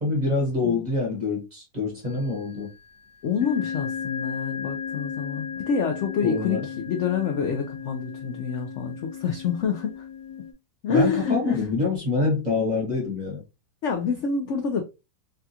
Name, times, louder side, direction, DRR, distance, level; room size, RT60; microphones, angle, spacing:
voice 1, 0.0-2.7 6.2-6.6 10.9-13.4, left 3 dB, 30° right, 1.0 m, -26 dB
sound 1, 2.1-2.6 3.4-10.5, left 7 dB, 90° left, 1.3 m, -34 dB
voice 2, 3.2-10.1 10.8-11.6 13.8-14.8, left 6 dB, 75° left, 0.7 m, -27 dB
3.5 x 2.3 x 2.7 m
omnidirectional pair, 1.8 m